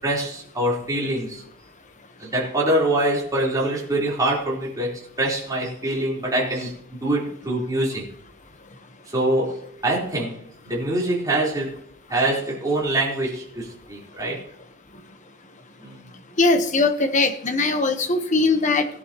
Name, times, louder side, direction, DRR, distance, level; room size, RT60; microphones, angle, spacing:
voice 1, 0.0-1.4 2.2-8.0 9.1-11.7 12.1-14.5 15.8-16.1, right 1 dB, 20° right, -5 dB, 4.0 m, -24 dB
voice 2, 16.4-18.9, left 3 dB, 35° left, 7 dB, 1.1 m, -20 dB
17.5 x 10.5 x 3.0 m, 0.63 s
head